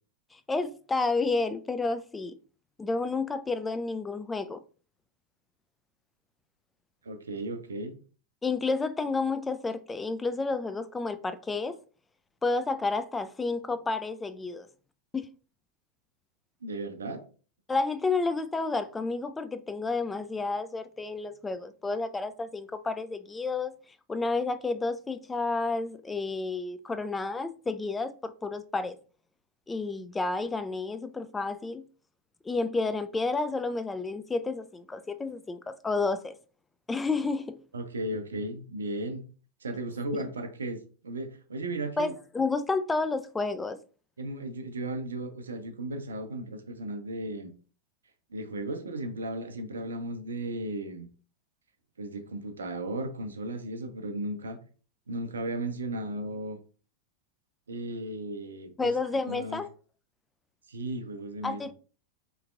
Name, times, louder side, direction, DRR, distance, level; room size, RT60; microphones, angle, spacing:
voice 1, 0.3-2.3 2.8-4.6 8.4-11.8 12.4-14.7 15.1-15.3 17.7-23.7 24.1-29.0 29.7-31.8 32.4-36.3 36.9-37.6 42.0-43.8 58.8-59.7 61.4-61.7, left 3 dB, 10° left, 0.3 m, -30 dB
voice 2, 7.0-7.9 16.6-17.2 37.7-39.2 39.6-42.1 44.2-47.5 48.3-51.1 52.0-54.6 55.1-56.6 57.7-59.6 60.7-61.6, right 1 dB, 70° right, 0.5 m, -35 dB
3.3 x 3.0 x 2.4 m
figure-of-eight pair, 90°, 0 cm